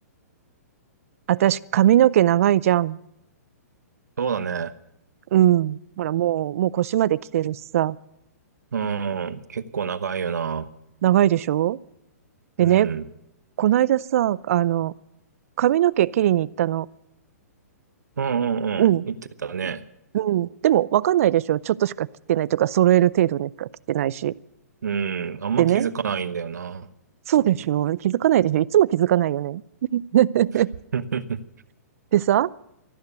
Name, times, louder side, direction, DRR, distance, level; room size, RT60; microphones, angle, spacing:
voice 1, 1.3-3.0 5.3-8.0 11.0-11.8 12.6-12.9 13.6-14.9 15.6-16.9 18.8-19.0 20.1-24.3 25.6-25.9 27.3-29.6 29.9-30.7 32.1-32.5, right 12 dB, 55° right, 22 dB, 0.5 m, -20 dB
voice 2, 4.2-4.7 8.7-10.7 12.6-13.1 18.2-19.2 19.4-19.8 24.8-26.9 30.9-31.4, right 6 dB, 85° right, 14 dB, 1.0 m, -27 dB
13.5 x 12.0 x 8.1 m, 0.83 s
hypercardioid pair, 140°, 9 cm